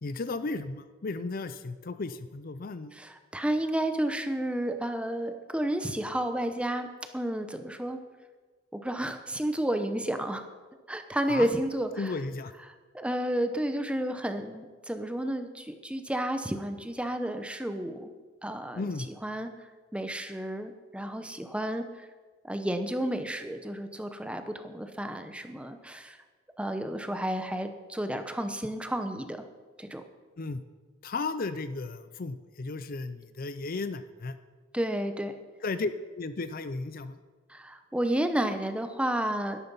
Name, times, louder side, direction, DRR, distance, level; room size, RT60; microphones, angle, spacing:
voice 1, 0.0-2.9 11.3-11.5 12.0-12.5 18.8-19.1 30.4-30.6 31.0-34.4 35.6-37.2, left 3 dB, 45° left, 12 dB, 0.5 m, -34 dB
voice 2, 2.9-6.9 7.1-8.0 8.7-10.4 10.9-12.1 12.9-18.1 18.4-18.8 19.2-19.5 19.9-21.8 22.4-26.2 26.6-29.4 29.8-30.0 34.7-35.3 37.5-39.6, right 1 dB, 5° right, 8 dB, 0.8 m, -31 dB
12.0 x 11.5 x 5.5 m, 1.4 s
head